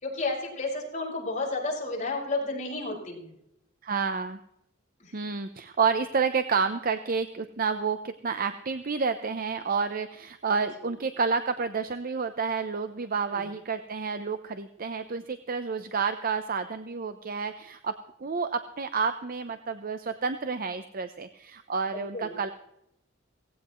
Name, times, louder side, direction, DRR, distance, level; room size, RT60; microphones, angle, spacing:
voice 1, 0.0-3.3 5.0-5.2 13.3-13.4 21.9-22.4, left 2 dB, 40° left, -2 dB, 5.4 m, -32 dB
voice 2, 3.8-4.4 5.1-22.5, right 5 dB, 45° right, 9 dB, 0.7 m, -30 dB
18.0 x 16.0 x 3.1 m, 0.79 s
head